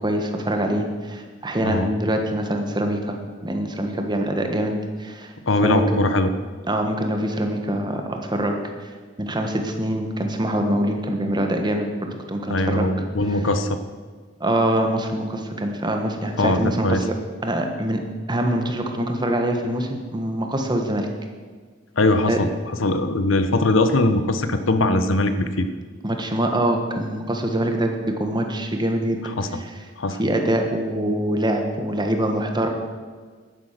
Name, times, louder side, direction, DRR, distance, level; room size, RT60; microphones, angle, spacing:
voice 1, 0.0-3.2 3.4-5.3 5.6-6.0 6.7-8.6 9.2-12.9 13.3-13.4 14.4-17.2 17.4-18.0 18.3-21.1 22.3-22.4 26.0-29.8 30.2-32.7, right 1 dB, 25° right, 4 dB, 1.4 m, -24 dB
voice 2, 5.5-6.3 12.5-13.8 16.4-17.0 22.0-22.5 22.8-25.7 29.4-29.5 30.0-30.2, left 2 dB, 90° left, 9 dB, 1.0 m, -21 dB
10.5 x 10.0 x 6.7 m, 1.5 s
head